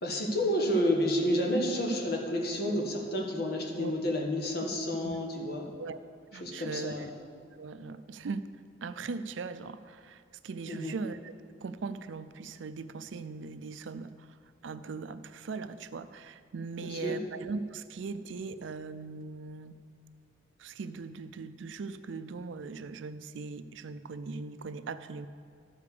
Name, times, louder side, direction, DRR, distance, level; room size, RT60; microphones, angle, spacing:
voice 1, 0.0-5.6 6.4-7.0 10.7-11.0 16.8-17.2, equal, 60° left, 0 dB, 1.5 m, -30 dB
voice 2, 5.6-6.0 6.3-7.1 7.6-8.4 8.8-14.4 14.6-19.8 20.6-25.3, right 4 dB, 85° right, 12 dB, 0.4 m, -40 dB
12.5 x 5.0 x 6.8 m, 2.2 s
head